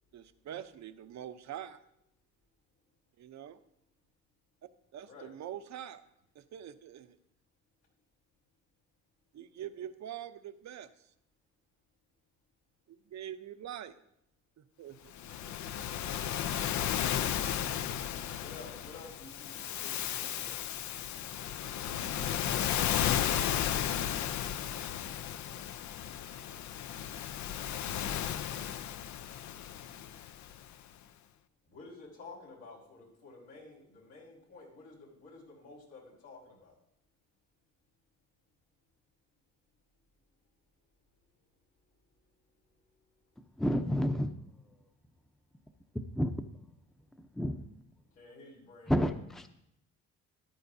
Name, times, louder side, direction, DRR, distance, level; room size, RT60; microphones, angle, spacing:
voice 1, 0.1-1.8 3.2-3.6 4.9-6.1 6.3-7.2 9.3-10.9 12.9-13.9 14.6-15.2, right 10 dB, 65° right, 10 dB, 0.7 m, -44 dB
Waves surf, 15.1-30.6, left 10 dB, 70° left, 0.6 m, -34 dB
voice 2, 18.3-20.6 31.6-36.7 48.2-48.9, left 3 dB, 90° left, -4 dB, 4.6 m, -52 dB
voice 3, 43.6-44.3 46.1-46.3 47.2-47.6 48.9-49.5, equal, ahead, 8 dB, 0.7 m, -30 dB
14.0 x 11.0 x 2.7 m, 0.76 s
cardioid pair, 90°, 30 cm